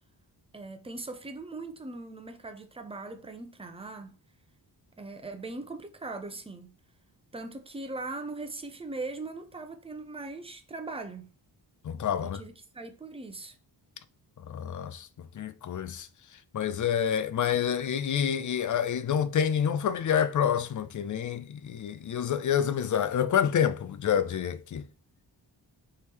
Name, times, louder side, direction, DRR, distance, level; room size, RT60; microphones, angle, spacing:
voice 1, 0.5-4.2 5.0-6.7 7.3-11.3 12.2-13.6, right 3 dB, 15° right, 0.6 m, -40 dB
voice 2, 11.8-12.4 14.4-16.1 16.5-24.9, left 8 dB, 45° left, 0.4 m, -28 dB
4.6 x 3.1 x 3.4 m
wide cardioid pair, 110°, 42 cm